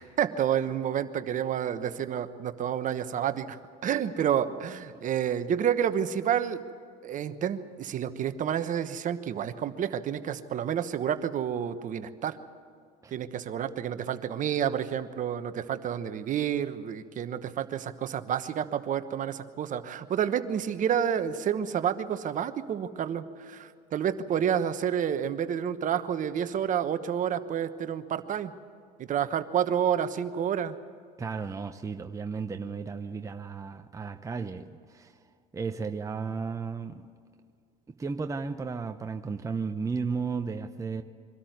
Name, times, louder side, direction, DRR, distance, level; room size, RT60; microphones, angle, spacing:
voice 1, 0.0-3.6 3.8-6.6 7.0-12.4 13.1-28.5 29.0-30.8, right 9 dB, 40° right, 11 dB, 1.1 m, -29 dB
voice 2, 31.2-35.2 35.5-37.0 37.9-41.0, right 5 dB, 15° right, 6 dB, 0.8 m, -34 dB
23.5 x 13.0 x 9.4 m, 2.1 s
supercardioid pair, 90°, 20 cm